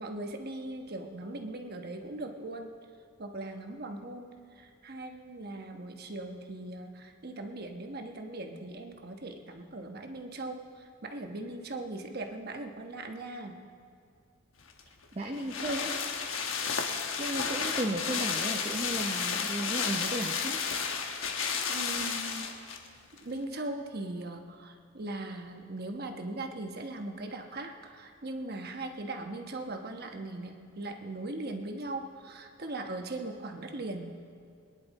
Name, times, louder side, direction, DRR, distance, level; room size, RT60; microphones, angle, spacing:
voice 1, 0.0-2.7 3.2-13.6 21.6-22.7 23.2-34.2, right 2 dB, 50° right, 4 dB, 1.1 m, -39 dB
sound 1, 14.7-22.9 23.2-23.3, left 6 dB, 75° left, 1.1 m, -32 dB
voice 2, 15.1-15.9 17.2-20.6, right 1 dB, 30° right, 1 dB, 0.8 m, -34 dB
22.5 x 10.5 x 4.1 m, 2.3 s
head